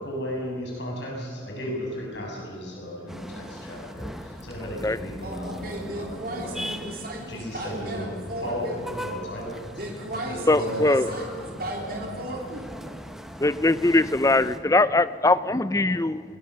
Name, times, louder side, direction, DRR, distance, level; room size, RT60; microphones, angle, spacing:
voice 1, 0.0-9.8 10.3-11.3 11.7-12.3, equal, 70° left, -2 dB, 6.8 m, -35 dB
sound 1, 3.1-14.6, equal, ahead, 1.2 m, -40 dB
voice 2, 5.2-8.8 9.7-12.8, right 1 dB, 50° right, 0 dB, 3.7 m, -35 dB
voice 3, 10.5-11.1 13.4-16.2, left 2 dB, 15° left, 15 dB, 0.6 m, -21 dB
21.5 x 19.5 x 6.8 m, 2.1 s
head